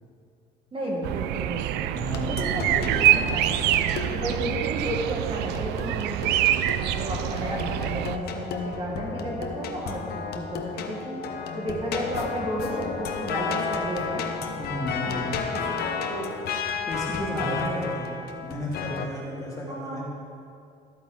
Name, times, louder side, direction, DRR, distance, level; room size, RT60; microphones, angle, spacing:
voice 1, 0.7-1.9 2.2-3.0 3.3-3.6 4.1-6.4 6.8-11.2 11.5-14.2 15.1-15.3 15.5-16.5 17.1-18.0 19.7-20.0, right 1 dB, 30° right, -2 dB, 1.7 m, -33 dB
sound 1, 1.0-8.2, right 12 dB, 85° right, 0.4 m, -25 dB
voice 2, 1.8-2.9 14.6-15.5 16.9-18.1 18.4-20.0, equal, 20° left, -4 dB, 2.5 m, -34 dB
sound 2, 2.1-19.1, left 5 dB, 70° left, 0.9 m, -33 dB
12.5 x 8.6 x 4.0 m, 2.5 s
cardioid pair, 110°, 17 cm